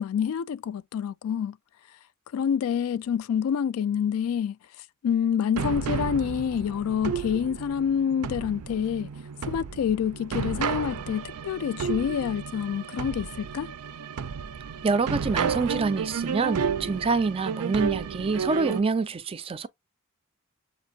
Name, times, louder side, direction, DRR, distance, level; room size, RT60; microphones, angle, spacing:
voice 1, 0.0-1.6 2.3-4.6 5.0-9.1 9.4-13.7, left 8 dB, 70° left, 0.3 m, -27 dB
sound 1, 5.6-18.8, right 6 dB, 85° right, 0.5 m, -32 dB
voice 2, 14.8-19.7, right 4 dB, 25° right, 0.3 m, -26 dB
7.1 x 2.5 x 2.7 m
head